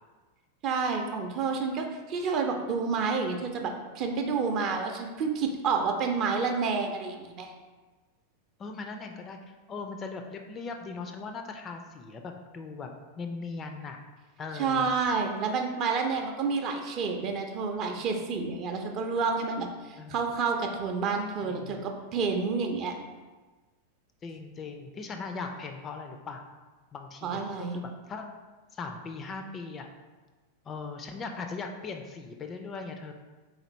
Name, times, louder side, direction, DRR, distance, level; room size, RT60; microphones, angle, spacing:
voice 1, 0.6-7.5 14.6-22.9 27.2-27.8, right 5 dB, 35° right, 3 dB, 0.5 m, -29 dB
voice 2, 8.6-14.0 14.4-14.9 20.0-20.2 21.4-21.8 24.2-26.4 26.9-28.3 28.7-29.9 30.7-33.1, left 4 dB, 25° left, 4 dB, 0.3 m, -39 dB
3.8 x 3.2 x 3.0 m, 1.3 s
figure-of-eight pair, 90°, 0 cm